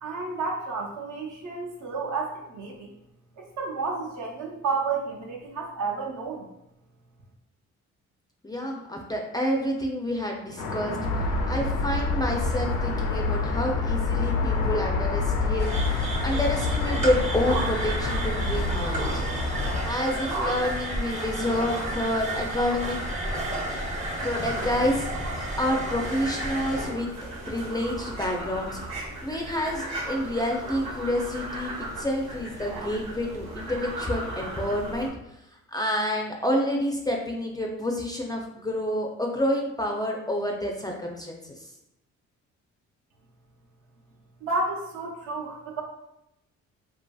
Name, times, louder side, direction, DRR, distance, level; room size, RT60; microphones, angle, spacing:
voice 1, 0.0-2.9 3.4-6.5 44.4-45.8, right 4 dB, 70° right, -1 dB, 0.8 m, -31 dB
voice 2, 8.4-15.7 16.2-19.1 19.8-23.0 24.2-27.1 27.5-35.1 35.5-41.7, left 1 dB, 15° left, 0 dB, 0.4 m, -28 dB
sound 1, 10.6-19.9, left 3 dB, 85° left, 0.5 m, -27 dB
sound 2, 15.6-26.9, right 1 dB, 25° right, 0.7 m, -33 dB
sound 3, 17.4-35.1, right 1 dB, 85° right, 1.1 m, -36 dB
2.7 x 2.6 x 2.2 m, 0.86 s
cardioid pair, 90°, 30 cm